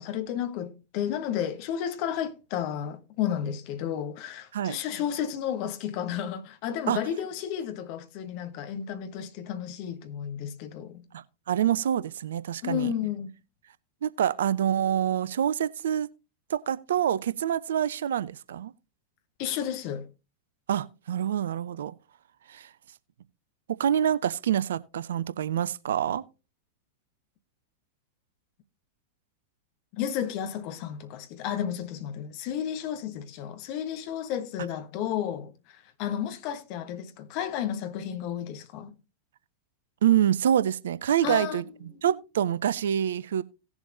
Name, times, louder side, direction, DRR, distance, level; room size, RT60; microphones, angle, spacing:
voice 1, 0.0-11.1 12.6-13.3 19.4-20.1 29.9-38.9 41.2-41.6, left 9 dB, 45° left, 1.1 m, -32 dB
voice 2, 11.1-12.9 14.0-16.1 16.5-18.7 20.7-21.9 22.5-22.7 23.7-26.2 40.0-41.6 42.0-43.4, right 10 dB, 60° right, 0.5 m, -26 dB
17.5 x 7.2 x 2.5 m
figure-of-eight pair, 90°, 0 cm